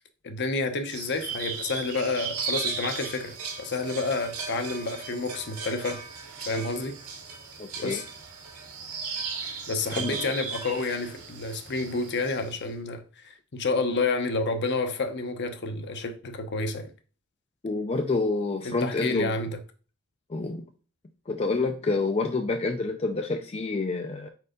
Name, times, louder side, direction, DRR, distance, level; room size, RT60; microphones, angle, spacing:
voice 1, 0.2-6.0 6.5-7.0 7.8-8.0 9.7-16.9 18.6-19.6, left 3 dB, 50° left, 0.8 m, -29 dB
sound 1, 0.9-12.6, right 5 dB, 80° right, 1.9 m, -36 dB
voice 2, 7.6-8.0 10.0-10.2 17.6-19.3 20.3-20.6 21.3-24.3, left 3 dB, 30° left, 0.4 m, -28 dB
4.7 x 4.5 x 5.0 m
head